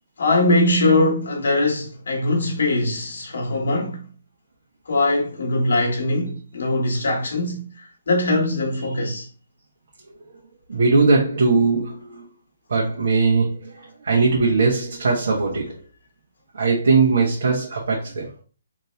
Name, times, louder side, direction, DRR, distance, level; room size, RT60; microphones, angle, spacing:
voice 1, 0.2-4.0 4.9-9.3 14.2-14.3, left 2 dB, 75° left, 1.4 m, -21 dB
voice 2, 10.7-12.2 12.7-13.8 14.0-15.8 16.5-18.3, right 4 dB, 70° right, 1.1 m, -19 dB
3.5 x 2.8 x 3.1 m
hypercardioid pair, 150°, 0 cm